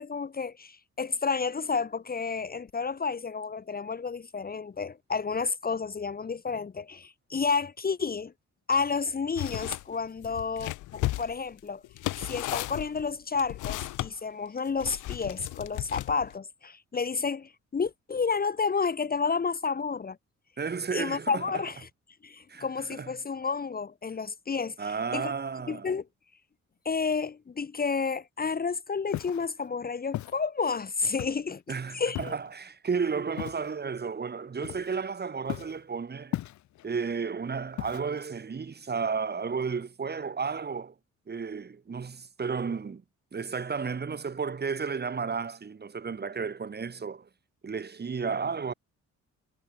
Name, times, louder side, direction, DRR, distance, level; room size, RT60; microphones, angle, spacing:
voice 1, 0.0-8.3 8.7-11.8 12.2-20.2 20.9-21.9 22.2-25.3 25.7-26.0 26.8-32.4, left 5 dB, 30° left, 1.1 m, -31 dB
sound 1, 9.4-9.8 10.2-14.1 14.8-16.3, left 17 dB, 90° left, 1.2 m, -34 dB
voice 2, 20.6-21.6 22.5-23.1 24.8-25.9 31.7-36.4 36.8-40.9 41.3-43.0 43.3-47.3 47.6-48.7, right 5 dB, 35° right, 2.3 m, -33 dB
Walk footsteps, 29.1-29.5 30.1-30.4 31.2-31.5 32.1-32.5 33.4-33.7 34.6-35.1 35.5-35.8 36.3-36.9 37.8-38.3, left 14 dB, 70° left, 0.7 m, -36 dB
cardioid pair, 90°, 30 cm